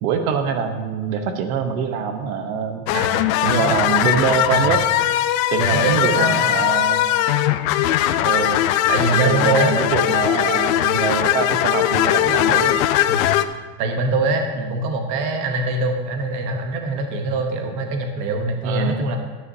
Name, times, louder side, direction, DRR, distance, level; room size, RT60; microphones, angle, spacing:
voice 1, 0.0-2.8 3.4-4.8 5.5-7.1 8.2-8.6 9.1-12.8 14.6-14.8 18.6-19.0, right 6 dB, 65° right, 6 dB, 1.0 m, -24 dB
sound 1, 2.9-13.4, left 12 dB, 65° left, 0.6 m, -19 dB
voice 2, 2.9-3.8 4.5-4.7 5.6-6.3 8.9-9.7 13.1-13.3 13.8-19.2, right 3 dB, 40° right, 4 dB, 1.0 m, -23 dB
12.5 x 9.2 x 2.7 m, 1.3 s
supercardioid pair, 180°, 44 cm